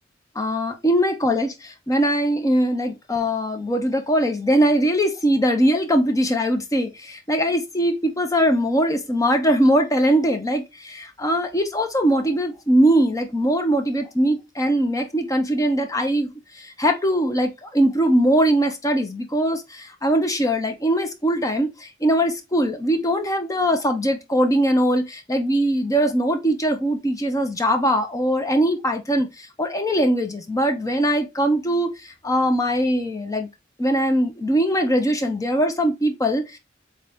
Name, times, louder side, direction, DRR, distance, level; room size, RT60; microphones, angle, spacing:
voice 1, 0.4-33.5 33.8-36.6, equal, 15° left, 0.6 m, -21 dB
3.9 x 3.3 x 3.4 m
head